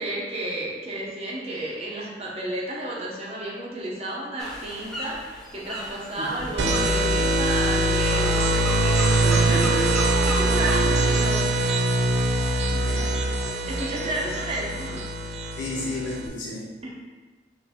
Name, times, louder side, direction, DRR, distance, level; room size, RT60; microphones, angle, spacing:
voice 1, 0.0-10.0 10.2-11.7 13.7-15.1 16.8-16.9, right 1 dB, 35° right, -4 dB, 0.8 m, -32 dB
Sea Seagulls on cliff, 4.4-11.2, equal, 5° left, 0.5 m, -35 dB
voice 2, 6.2-6.8 9.1-10.2 12.7-13.3 15.5-16.7, left 1 dB, 80° left, -4 dB, 1.0 m, -33 dB
sound 1, 6.6-16.3, right 2 dB, 65° right, 0.4 m, -23 dB
4.8 x 2.6 x 3.5 m, 1.3 s
head